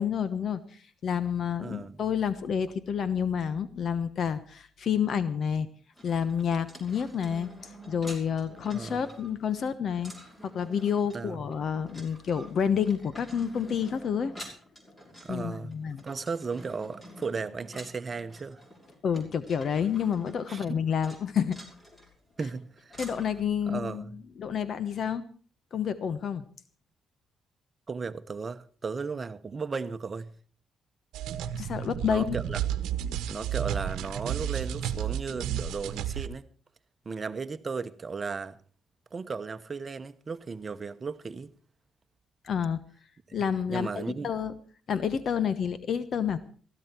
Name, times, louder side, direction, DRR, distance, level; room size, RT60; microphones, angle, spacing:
voice 1, 0.0-5.7 6.0-10.1 10.4-14.3 15.3-16.0 19.0-21.6 23.0-24.0 24.4-25.2 25.7-26.5 31.5-32.4 42.4-42.8 43.3-44.5 44.9-46.4, left 7 dB, 55° left, 1.0 m, -29 dB
voice 2, 1.6-2.0 8.7-9.1 11.1-11.4 15.2-15.7 16.0-18.6 20.5-20.8 22.4-23.0 23.7-24.2 27.9-30.3 32.0-32.6 33.3-36.5 37.0-38.6 39.1-41.5 43.3-43.4 43.7-44.3, right 4 dB, 35° right, 1.0 m, -35 dB
sound 1, 5.9-23.4, equal, 20° left, 5.9 m, -49 dB
sound 2, 31.1-36.3, right 10 dB, 90° right, 1.0 m, -32 dB
16.5 x 15.0 x 4.5 m
cardioid pair, 90°, 0 cm